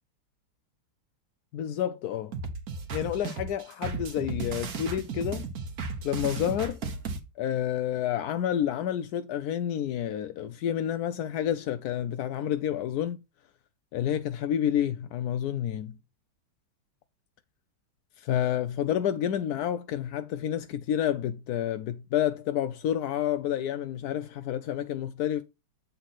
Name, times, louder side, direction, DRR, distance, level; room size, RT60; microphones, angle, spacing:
voice 1, 1.5-2.3 2.9-5.5 6.0-6.8 7.4-13.2 13.9-16.0 18.2-25.4, left 10 dB, 75° left, 0.8 m, -29 dB
sound 1, 2.3-7.2, right 4 dB, 50° right, 1.4 m, -35 dB
7.8 x 4.1 x 4.1 m
omnidirectional pair, 2.2 m